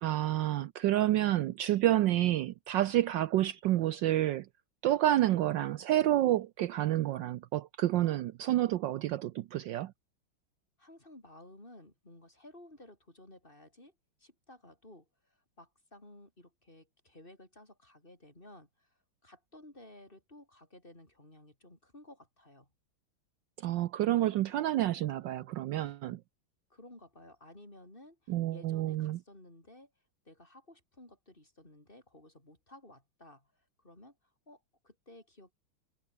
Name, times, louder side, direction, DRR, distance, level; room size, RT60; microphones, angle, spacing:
voice 1, 0.0-4.5 4.8-9.9 23.6-26.2 28.3-29.2, right 13 dB, 70° right, 1.2 m, -29 dB
voice 2, 10.8-22.7 26.7-29.9 30.3-35.5, left 1 dB, 25° left, 5.6 m, -55 dB
omnidirectional pair, 2.2 m